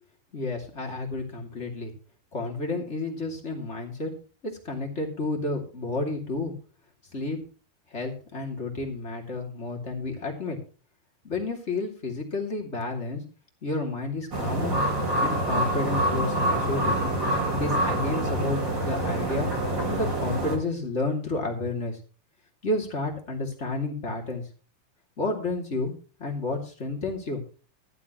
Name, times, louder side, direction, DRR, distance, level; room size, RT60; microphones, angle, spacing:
voice 1, 0.3-1.9 2.3-4.1 4.4-6.5 7.1-7.4 7.9-10.6 11.2-13.2 13.6-14.8 15.2-16.9 17.6-19.5 19.9-22.0 22.6-24.4 25.2-25.9 26.2-27.4, left 2 dB, 20° left, 1 dB, 2.4 m, -31 dB
sound 1, 14.3-20.6, right 1 dB, 30° right, 4.8 m, -26 dB
13.0 x 12.5 x 3.1 m, 0.37 s
omnidirectional pair, 4.5 m